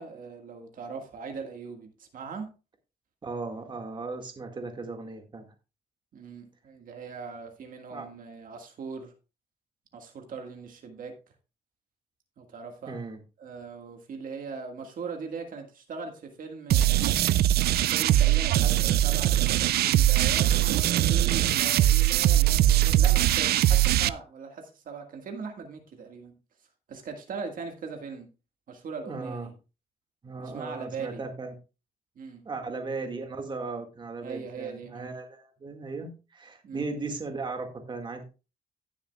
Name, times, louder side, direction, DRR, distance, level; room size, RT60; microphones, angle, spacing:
voice 1, 0.0-2.5 6.1-9.1 9.9-11.1 12.4-13.0 13.4-17.2 17.8-26.4 26.9-28.3 28.7-29.6 30.4-31.2 32.1-32.5 34.2-35.1 36.6-36.8, right 5 dB, 60° right, 1.7 m, -40 dB
voice 2, 3.2-5.5 7.9-8.1 12.9-13.2 29.0-29.5 30.2-31.5 32.5-38.2, right 3 dB, 30° right, 1.8 m, -37 dB
sound 1, 16.7-24.1, right 13 dB, 80° right, 0.4 m, -22 dB
17.0 x 7.2 x 2.3 m
cardioid pair, 145°, 16 cm